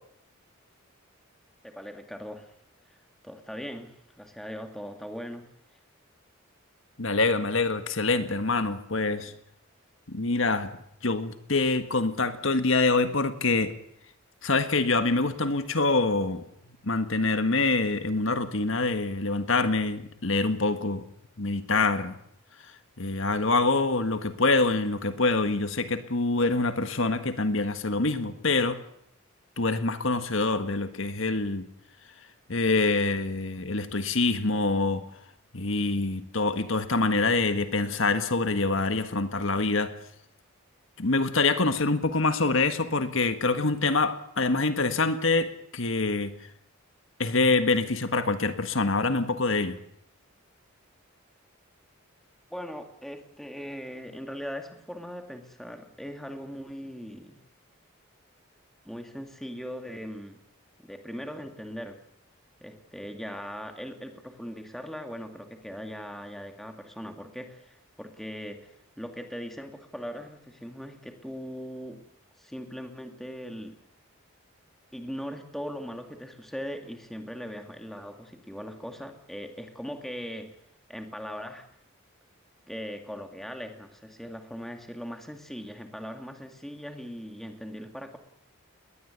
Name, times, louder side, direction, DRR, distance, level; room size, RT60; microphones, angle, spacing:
voice 1, 1.6-2.5 3.2-5.5 9.1-9.4 52.5-57.4 58.8-60.4 60.8-62.0 62.6-72.0 72.4-73.8 74.9-80.6 80.9-81.7 82.7-88.2, equal, ahead, 5 dB, 2.4 m, -40 dB
voice 2, 7.0-9.3 10.1-10.7 11.0-13.7 14.4-16.4 16.8-21.0 21.4-22.2 23.0-28.8 29.6-31.7 32.5-35.0 35.5-39.9 41.0-45.5 45.7-46.3 47.2-49.8, left 3 dB, 65° left, 9 dB, 1.6 m, -25 dB
21.0 x 20.0 x 8.2 m, 0.72 s
head